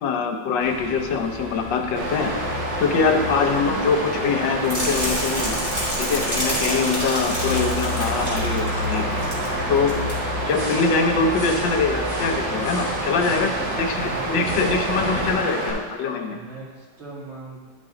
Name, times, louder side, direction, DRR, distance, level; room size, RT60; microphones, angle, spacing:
voice 1, 0.0-2.3 2.8-5.6 6.0-9.3 9.7-10.0 10.5-16.4, left 4 dB, 75° left, 4 dB, 1.4 m, -23 dB
sound 1, 0.6-15.3, left 2 dB, 55° right, 2.9 m, -32 dB
Water, 2.0-15.7, right 2 dB, 75° right, 2.0 m, -28 dB
voice 2, 2.9-3.4 13.1-14.7 16.2-17.7, right 3 dB, 35° right, -7 dB, 2.3 m, -40 dB
sound 2, 4.6-9.5 9.8-10.1 10.6-10.7, equal, 10° right, 2.2 m, -29 dB
10.5 x 4.6 x 3.7 m, 1.4 s
omnidirectional pair, 2.1 m